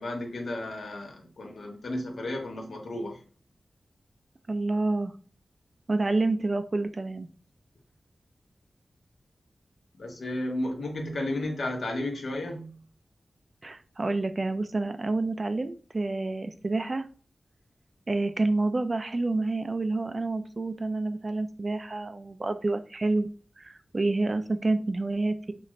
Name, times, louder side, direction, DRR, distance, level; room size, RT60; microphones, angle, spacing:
voice 1, 0.0-3.1 10.0-12.7, left 1 dB, 85° left, 1 dB, 1.1 m, -33 dB
voice 2, 4.5-5.1 5.9-7.3 13.6-17.1 18.1-23.3 23.6-25.5, right 2 dB, 35° right, 9 dB, 0.4 m, -28 dB
4.1 x 2.5 x 3.1 m, 0.40 s
wide cardioid pair, 120°, 0 cm